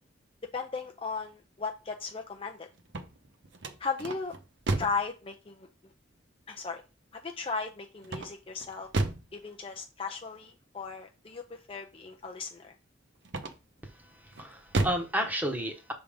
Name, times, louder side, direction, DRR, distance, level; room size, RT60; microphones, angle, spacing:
voice 1, 0.5-2.7 3.8-4.3 4.8-5.9 6.5-6.8 7.1-8.9 9.3-12.7, left 4 dB, 30° left, 3 dB, 0.5 m, -36 dB
sound 1, 2.8-5.1 8.0-9.3 13.2-13.8 14.3-15.1, right 2 dB, 60° right, 0.8 m, -32 dB
voice 2, 13.8-15.9, equal, 10° right, 4 dB, 1.1 m, -32 dB
6.5 x 3.5 x 5.1 m, 0.29 s
head